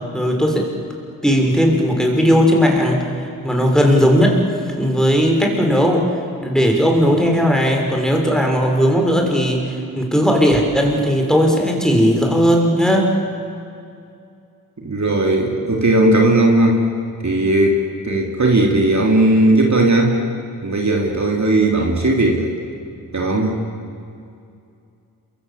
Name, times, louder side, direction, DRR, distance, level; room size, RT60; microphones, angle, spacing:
voice 1, 0.1-0.7 1.2-3.1 3.4-4.4 4.8-6.1 6.4-13.1, equal, ahead, 1 dB, 6.2 m, -16 dB
voice 2, 14.8-16.8 17.2-17.8 18.0-20.2 20.6-22.5 23.1-23.5, right 2 dB, 50° right, 0 dB, 4.0 m, -16 dB
27.5 x 23.5 x 8.7 m, 2.5 s
cardioid pair, 50°, 36 cm